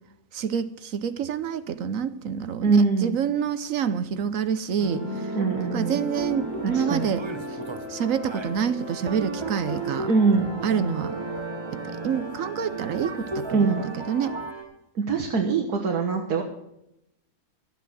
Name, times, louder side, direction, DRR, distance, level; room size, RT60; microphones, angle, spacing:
voice 1, 0.3-5.0 5.7-7.2 7.9-10.1 10.6-11.1 12.0-13.8 14.1-14.4, right 7 dB, 65° right, 1.1 m, -27 dB
voice 2, 2.6-3.2 5.3-6.0 6.6-7.1 10.1-10.5 13.5-13.8 15.0-16.4, right 4 dB, 80° right, 1.9 m, -23 dB
sound 1, 4.8-14.6, equal, 10° right, 4.4 m, -37 dB
sound 2, 6.1-7.9 8.2-14.5, right 3 dB, 45° right, 0.3 m, -34 dB
13.0 x 9.2 x 7.5 m
omnidirectional pair, 1.6 m